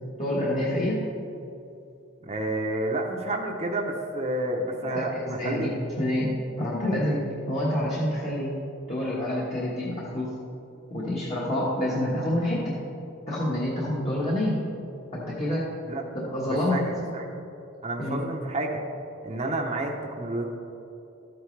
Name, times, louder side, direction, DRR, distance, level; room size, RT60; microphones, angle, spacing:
voice 1, 0.2-1.0 4.9-8.5 8.9-10.3 10.9-12.8 13.3-14.6 15.1-15.7 16.1-16.8 18.0-18.2, left 1 dB, 30° left, -6 dB, 1.4 m, -27 dB
voice 2, 2.2-5.7 15.9-16.0 16.4-17.3 17.8-18.8 19.2-20.4, right 2 dB, 30° right, 0 dB, 0.8 m, -30 dB
13.0 x 9.3 x 3.3 m, 2.8 s
head